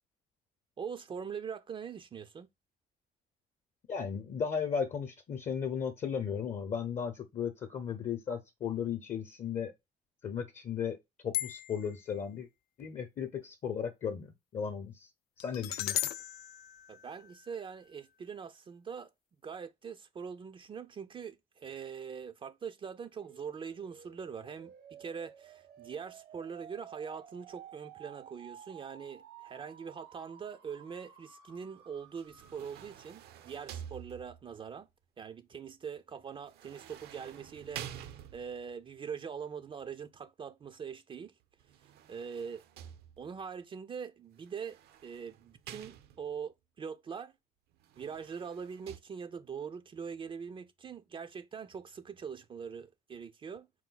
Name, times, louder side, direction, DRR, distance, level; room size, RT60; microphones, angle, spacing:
voice 1, 0.8-2.5 16.9-19.1 19.4-34.9 35.2-41.3 42.1-42.6 43.2-47.3 48.0-53.7, right 6 dB, 30° right, 0.4 m, -43 dB
voice 2, 3.9-9.7 10.2-11.0 11.2-12.5 12.8-15.1 15.4-16.0, left 7 dB, 45° left, 0.7 m, -35 dB
sound 1, 11.3-12.0 15.4-17.6, left 13 dB, 65° left, 0.4 m, -37 dB
sound 2, 23.2-33.1, right 9 dB, 90° right, 1.3 m, -54 dB
sound 3, 32.2-34.6 36.5-38.7 41.6-43.5 44.5-46.4 47.8-49.0, right 10 dB, 70° right, 0.6 m, -49 dB
4.4 x 2.2 x 3.8 m
cardioid pair, 110°, 17 cm